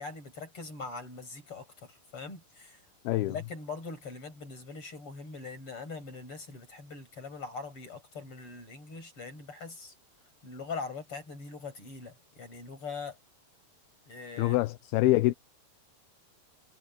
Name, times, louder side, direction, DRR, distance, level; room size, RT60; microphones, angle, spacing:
voice 1, 0.0-2.8 3.1-9.9 10.4-13.2 14.1-14.6, left 4 dB, 35° left, 7.3 m, -42 dB
voice 2, 3.0-3.3 14.4-15.3, left 17 dB, 80° left, 2.6 m, -25 dB
omnidirectional pair, 4.6 m